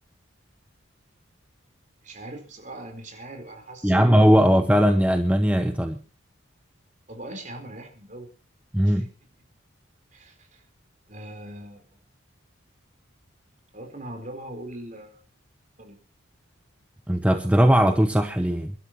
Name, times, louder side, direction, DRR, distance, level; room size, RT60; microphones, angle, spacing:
voice 1, 2.0-4.5 7.1-8.3 8.8-9.1 10.1-10.6 11.1-11.8 13.7-15.2 15.8-16.0, right 1 dB, 40° right, 5 dB, 4.2 m, -40 dB
voice 2, 3.8-6.0 8.7-9.1 17.1-18.7, equal, 5° right, 7 dB, 0.8 m, -19 dB
29.0 x 12.5 x 3.0 m, 0.34 s
head